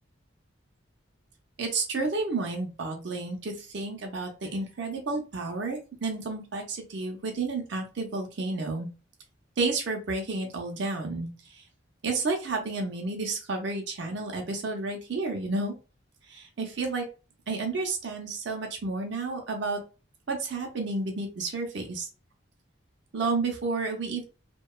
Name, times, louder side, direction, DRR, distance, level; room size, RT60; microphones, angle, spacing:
voice 1, 1.6-8.9 9.6-11.6 12.0-15.7 16.3-17.1 17.5-19.8 20.3-22.1 23.1-24.2, right 3 dB, 60° right, 2 dB, 0.6 m, -31 dB
2.8 x 2.2 x 2.2 m, 0.33 s
head